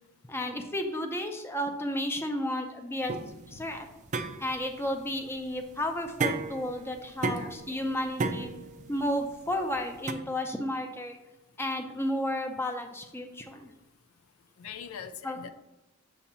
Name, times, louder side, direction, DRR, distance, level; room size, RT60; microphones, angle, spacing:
voice 1, 0.3-3.2 3.5-3.9 4.4-8.5 8.9-11.2 11.6-13.7 15.2-15.5, left 1 dB, 10° left, 4 dB, 0.6 m, -32 dB
sound 1, 3.1-10.1, right 3 dB, 35° right, 0.4 m, -34 dB
voice 2, 14.6-15.5, left 7 dB, 75° left, 10 dB, 0.4 m, -42 dB
7.1 x 2.8 x 5.5 m, 0.99 s
head